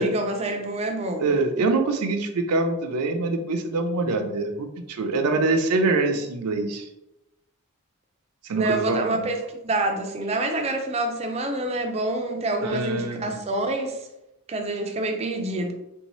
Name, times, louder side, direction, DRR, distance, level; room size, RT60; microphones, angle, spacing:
voice 1, 0.0-1.2 8.6-14.0 14.5-15.7, right 2 dB, 30° right, 4 dB, 0.4 m, -27 dB
voice 2, 1.2-6.9 8.4-9.3 12.6-13.4, right 3 dB, 80° right, 6 dB, 0.5 m, -24 dB
3.4 x 2.7 x 3.0 m, 0.90 s
head